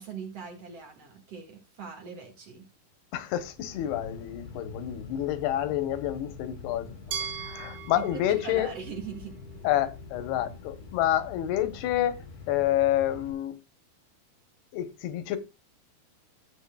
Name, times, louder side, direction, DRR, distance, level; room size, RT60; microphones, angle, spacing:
voice 1, 0.0-2.7 7.9-9.4, right 6 dB, 50° right, 2.3 m, -41 dB
voice 2, 3.1-8.7 9.6-13.6 14.7-15.4, left 12 dB, 85° left, 3.0 m, -28 dB
sound 1, 3.5-13.3, left 4 dB, 60° left, 4.2 m, -45 dB
Glass, 7.1-10.0, right 8 dB, 70° right, 2.1 m, -40 dB
14.5 x 8.0 x 2.2 m
omnidirectional pair, 4.5 m